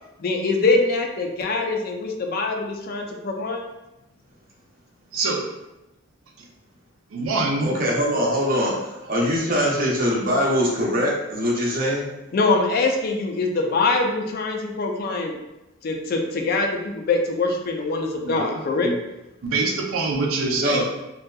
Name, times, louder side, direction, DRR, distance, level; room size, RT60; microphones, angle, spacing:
voice 1, 0.2-3.6 12.3-15.4 15.8-18.9, left 3 dB, 45° left, 2 dB, 0.3 m, -23 dB
voice 2, 5.1-5.4 7.1-7.7 18.2-18.4 18.8-18.9 19.4-20.8, right 3 dB, 90° right, 0 dB, 0.4 m, -24 dB
voice 3, 7.6-12.1 20.5-20.8, equal, 45° right, -3 dB, 0.6 m, -22 dB
2.6 x 2.3 x 2.2 m, 0.96 s
head